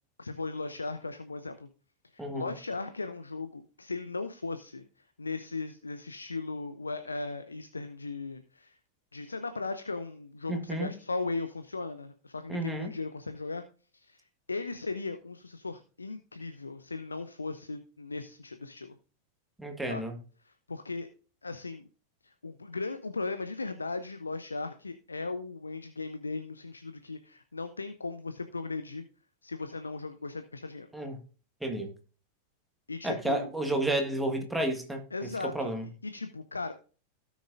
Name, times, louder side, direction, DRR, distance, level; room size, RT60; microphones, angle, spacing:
voice 1, 0.2-1.7 2.1-4.8 5.2-8.8 9.1-13.6 13.9-19.0 19.9-20.0 20.4-21.1 21.4-21.9 22.2-29.0 29.4-30.9 32.9-33.5 35.1-35.7 36.0-36.7, left 3 dB, 80° left, 0.6 m, -37 dB
voice 2, 2.2-2.5 10.5-10.9 12.5-12.9 19.6-20.2 30.9-31.2 31.6-31.9 33.0-35.0 35.4-35.9, right 1 dB, 5° right, 1.6 m, -31 dB
16.5 x 6.3 x 2.5 m
figure-of-eight pair, 90°, 0 cm